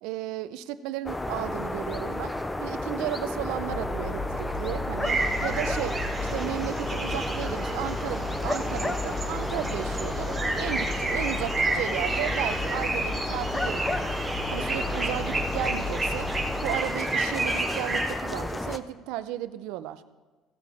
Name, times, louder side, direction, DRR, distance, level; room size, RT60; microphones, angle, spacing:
voice 1, 0.0-2.3 2.6-6.0 6.3-14.0 14.5-16.3 16.6-20.0, right 13 dB, 90° right, 12 dB, 0.6 m, -34 dB
sound 1, 1.1-18.8, left 1 dB, 10° left, 0.5 m, -32 dB
sound 2, 3.6-16.7, left 2 dB, 70° left, 3.7 m, -36 dB
sound 3, 5.0-18.1, right 3 dB, 10° right, 2.2 m, -31 dB
16.5 x 6.3 x 4.2 m, 1.3 s
cardioid pair, 160°, 0 cm